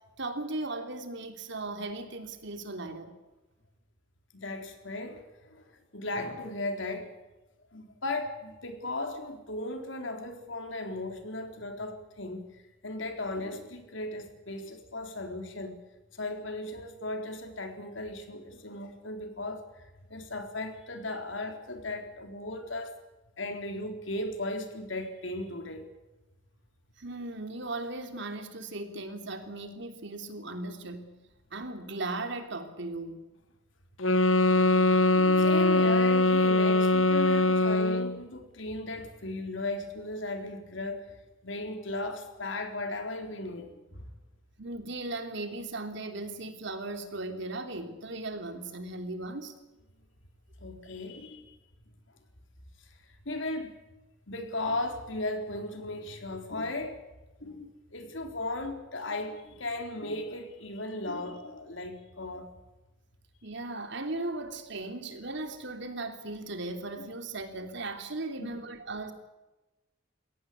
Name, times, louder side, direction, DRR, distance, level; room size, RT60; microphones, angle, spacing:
voice 1, 0.2-3.1 27.0-31.2 31.5-33.2 44.6-49.5 63.4-69.1, right 2 dB, 65° right, 6 dB, 3.3 m, -37 dB
voice 2, 4.3-5.7 5.9-7.1 7.7-12.5 12.8-15.7 16.2-22.9 23.4-25.9 34.5-41.2 41.4-44.0 50.6-51.5 53.3-53.8 54.3-57.0 57.4-62.5 68.4-68.5, left 2 dB, 70° left, 5 dB, 3.9 m, -36 dB
sound 1, 34.0-38.2, left 2 dB, 90° left, 1.1 m, -22 dB
22.5 x 17.5 x 8.5 m, 1.1 s
head